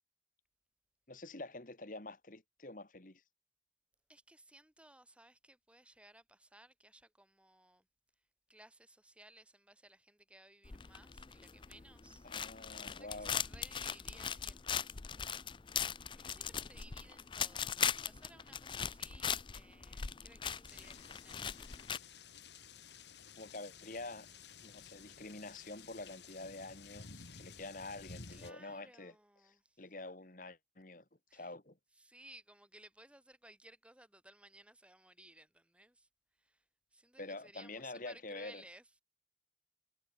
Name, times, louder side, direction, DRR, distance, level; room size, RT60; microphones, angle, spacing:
voice 1, 1.1-3.2 12.2-13.3 23.4-24.3 24.6-29.1 29.4-31.0 31.3-31.8 37.2-38.6, left 2 dB, 50° left, 1.9 m, -47 dB
voice 2, 4.1-7.9 8.5-12.3 12.8-15.0 16.1-21.6 28.3-29.8 31.3-31.5 31.9-36.1 36.3-36.6 36.9-38.9, right 1 dB, 5° right, 4.8 m, -60 dB
sound 1, 10.6-22.0, left 8 dB, 25° left, 0.5 m, -39 dB
sound 2, 20.7-28.5, left 5 dB, 80° left, 2.4 m, -54 dB
head